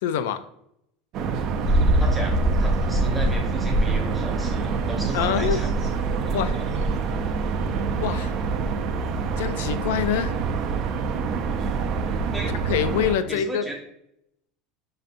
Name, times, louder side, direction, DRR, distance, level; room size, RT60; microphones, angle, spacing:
voice 1, 0.0-0.4 5.1-5.6 6.3-6.6 8.0-8.3 9.4-10.4 12.7-13.6, left 9 dB, 90° left, 11 dB, 0.3 m, -25 dB
sound 1, 1.1-13.1, right 5 dB, 40° right, 0.4 m, -26 dB
sound 2, 1.6-7.0, right 1 dB, 30° left, 0.6 m, -25 dB
voice 2, 2.0-5.7 12.3-12.6 13.3-13.8, right 1 dB, 5° right, -1 dB, 0.8 m, -34 dB
5.6 x 2.5 x 2.5 m, 0.77 s
cardioid pair, 165°, 0 cm